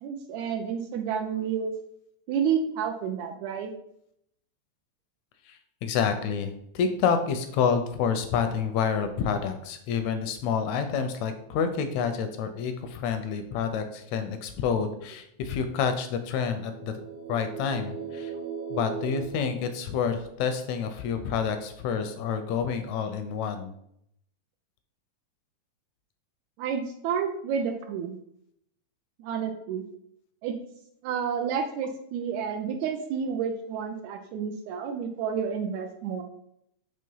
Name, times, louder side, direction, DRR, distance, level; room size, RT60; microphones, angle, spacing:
voice 1, 0.0-1.7 2.3-3.7 26.6-28.2 29.2-29.8 30.4-30.6 31.0-36.2, right 7 dB, 80° right, 4 dB, 1.8 m, -30 dB
voice 2, 5.4-16.9 17.3-18.3 18.7-23.7, left 6 dB, 80° left, 8 dB, 1.6 m, -28 dB
sound 1, 16.5-20.4, right 6 dB, 60° right, 1.6 m, -38 dB
5.6 x 3.2 x 5.4 m, 0.74 s
omnidirectional pair, 3.6 m